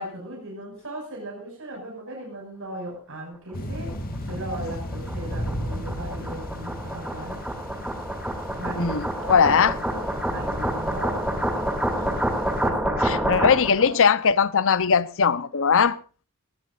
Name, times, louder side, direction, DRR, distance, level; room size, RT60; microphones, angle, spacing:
voice 1, 0.0-7.4 8.6-10.0 10.2-11.7 12.6-13.5 13.8-13.9, right 1 dB, 65° right, 6.3 m, -37 dB
sound 1, 3.5-12.7, equal, 40° left, 2.6 m, -36 dB
sound 2, 3.9-13.9, right 1 dB, 5° right, 2.6 m, -28 dB
voice 2, 8.8-9.7 11.9-12.3 13.0-16.0, left 6 dB, 65° left, 0.8 m, -20 dB
19.0 x 18.5 x 2.6 m
head